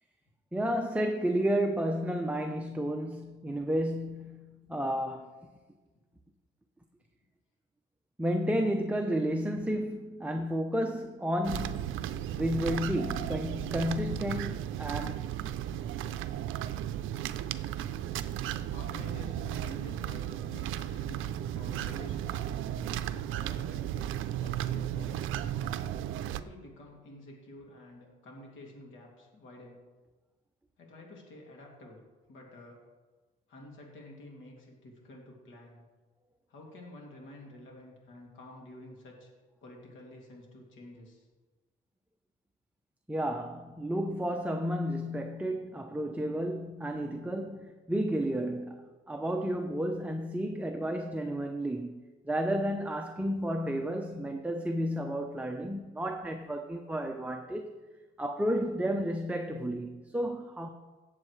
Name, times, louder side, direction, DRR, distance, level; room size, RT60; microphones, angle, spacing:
voice 1, 0.5-5.3 8.2-15.3 43.1-57.7 58.2-60.7, equal, 5° right, 0.7 m, -32 dB
sound 1, 11.4-26.4, right 11 dB, 85° right, 0.5 m, -35 dB
voice 2, 18.7-22.7 23.3-25.5 26.3-29.8 30.8-32.0 32.3-32.8 33.5-35.8 36.5-39.3 39.6-41.3, left 1 dB, 80° left, 2.6 m, -50 dB
17.5 x 7.4 x 3.2 m
cardioid pair, 90°, 20 cm